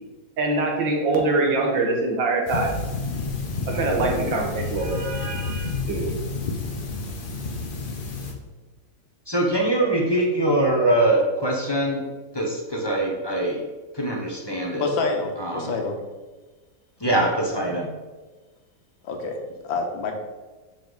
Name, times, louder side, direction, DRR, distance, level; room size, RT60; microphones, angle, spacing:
voice 1, 0.4-2.7 3.7-6.0, right 2 dB, 80° right, 0 dB, 2.0 m, -24 dB
sound 1, 2.5-8.3, left 3 dB, 45° left, 0.7 m, -30 dB
voice 2, 9.3-12.0 12.3-13.6 13.9-14.9 15.4-15.7 17.0-17.9, right 1 dB, 15° left, -1 dB, 1.0 m, -23 dB
voice 3, 14.8-16.0 19.0-19.4 19.7-20.1, left 3 dB, 85° left, 3 dB, 1.8 m, -27 dB
7.1 x 5.4 x 4.0 m, 1.3 s
omnidirectional pair, 2.0 m